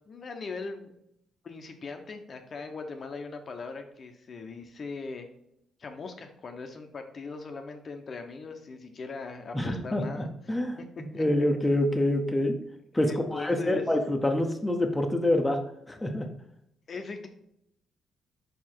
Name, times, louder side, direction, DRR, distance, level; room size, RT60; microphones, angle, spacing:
voice 1, 0.1-0.9 1.4-5.3 5.8-11.2 13.0-13.8 16.9-17.3, left 4 dB, 45° left, 5 dB, 0.8 m, -40 dB
voice 2, 9.5-10.0 10.5-12.6 12.9-16.3, left 1 dB, 10° left, 3 dB, 0.8 m, -26 dB
4.8 x 4.8 x 4.5 m, 0.76 s
cardioid pair, 90°, 0 cm